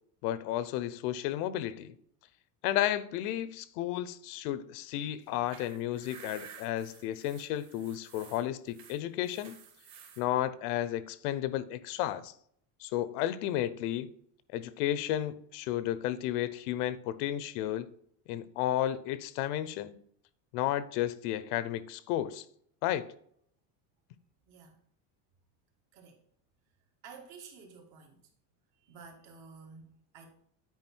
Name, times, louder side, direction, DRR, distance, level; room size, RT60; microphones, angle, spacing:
voice 1, 0.2-1.9 2.6-9.6 10.2-12.3 12.8-14.1 14.5-17.9 18.3-20.0 20.5-22.4 22.8-23.1, left 12 dB, 80° left, 0.8 m, -32 dB
sound 1, 5.2-10.2, right 7 dB, 40° right, 1.7 m, -52 dB
voice 2, 27.0-28.2 28.7-30.3, right 5 dB, 55° right, 2.0 m, -51 dB
9.5 x 4.8 x 4.4 m
cardioid pair, 175°, 45 cm